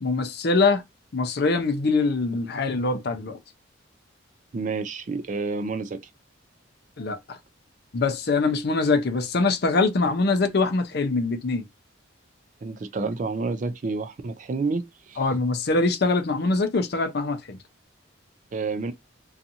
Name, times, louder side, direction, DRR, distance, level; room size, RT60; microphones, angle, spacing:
voice 1, 0.0-0.8 1.1-3.4 7.0-7.4 7.9-11.6 15.2-17.6, left 3 dB, 55° left, 0.5 m, -23 dB
voice 2, 4.5-6.0 12.6-15.2 18.5-18.9, right 3 dB, 40° right, 0.3 m, -29 dB
2.6 x 2.4 x 2.7 m
head